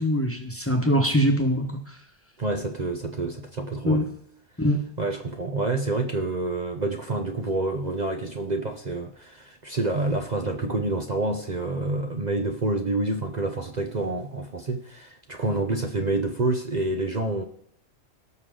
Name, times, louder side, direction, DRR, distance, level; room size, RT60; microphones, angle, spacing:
voice 1, 0.0-1.7 3.8-4.1 4.6-4.8, equal, 10° left, 4 dB, 1.3 m, -22 dB
voice 2, 2.4-4.0 5.0-17.4, right 2 dB, 40° right, 4 dB, 0.9 m, -28 dB
18.0 x 6.4 x 3.8 m, 0.70 s
omnidirectional pair, 1.2 m